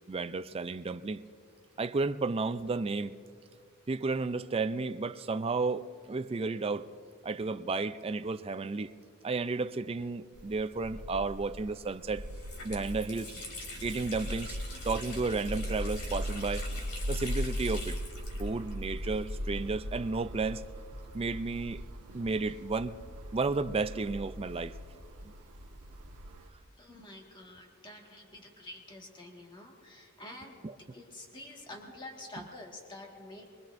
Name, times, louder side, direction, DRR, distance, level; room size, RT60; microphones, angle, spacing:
voice 1, 0.1-1.3 1.8-3.1 3.9-6.9 7.2-8.9 9.2-12.2 12.6-13.3 13.8-14.6 14.8-16.7 17.1-18.0 18.4-20.6 21.1-21.8 22.1-22.9 23.3-24.8 30.6-30.7, right 3 dB, 25° right, 0.4 m, -32 dB
sound 1, 10.4-26.5, equal, 85° right, 1.3 m, -39 dB
Water tap faucet, 11.6-11.7 12.1-19.8 20.1-20.2 21.0-22.5, left 2 dB, 70° left, 3.2 m, -46 dB
voice 2, 26.8-33.5, left 1 dB, 20° left, 1.7 m, -48 dB
23.0 x 22.5 x 2.6 m
head